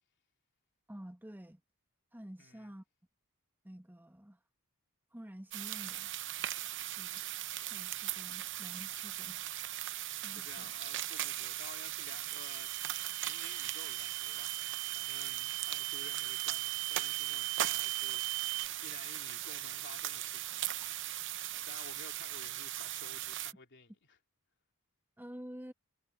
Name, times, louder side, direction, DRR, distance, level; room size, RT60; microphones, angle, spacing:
voice 1, 0.9-1.6 2.1-2.8 3.6-4.4 5.1-6.1 6.8-7.2 7.6-9.4 10.2-10.7 25.2-25.7, equal, 10° right, 1.5 m, -49 dB
voice 2, 2.4-2.7 10.2-12.7 13.2-20.9 21.5-24.2, left 4 dB, 55° left, 3.1 m, -54 dB
sound 1, 5.5-23.5, right 13 dB, 55° right, 0.7 m, -39 dB
sound 2, 12.3-18.7, right 21 dB, 80° right, 1.0 m, -40 dB
head